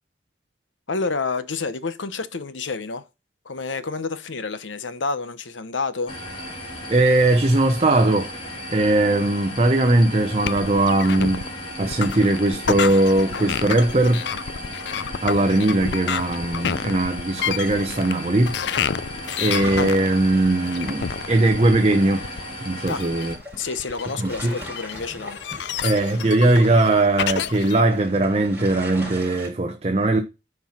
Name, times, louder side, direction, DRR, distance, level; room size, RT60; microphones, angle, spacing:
voice 1, 0.9-3.1 3.4-6.2 22.9-23.0 23.6-25.4, left 4 dB, 85° left, 0.9 m, -29 dB
sound 1, 6.1-23.4, left 1 dB, 30° left, 2.2 m, -35 dB
voice 2, 6.9-8.3 8.7-11.5 11.8-14.3 15.2-18.6 19.4-22.3 22.6-23.3 24.2-24.6 25.8-30.2, right 2 dB, 35° right, 0.9 m, -19 dB
sound 2, 10.4-27.8, left 7 dB, 65° left, 0.4 m, -29 dB
sound 3, 19.2-29.5, equal, 10° right, 4.0 m, -41 dB
9.5 x 4.6 x 5.8 m
head